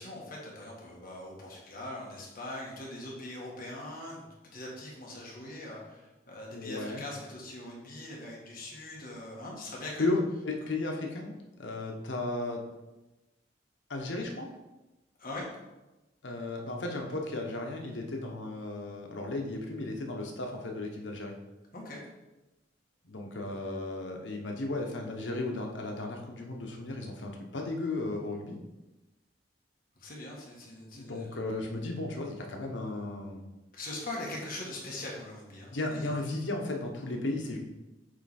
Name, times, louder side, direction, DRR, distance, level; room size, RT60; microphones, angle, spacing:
voice 1, 0.0-10.1 15.2-15.4 21.7-22.0 30.0-31.3 33.7-36.1, left 1 dB, 50° left, -3 dB, 1.6 m, -42 dB
voice 2, 6.5-7.0 10.0-12.6 13.9-14.5 16.2-21.3 23.0-28.6 30.9-33.5 35.7-37.6, left 2 dB, 90° left, 2 dB, 1.1 m, -35 dB
8.0 x 3.3 x 4.3 m, 1.0 s
head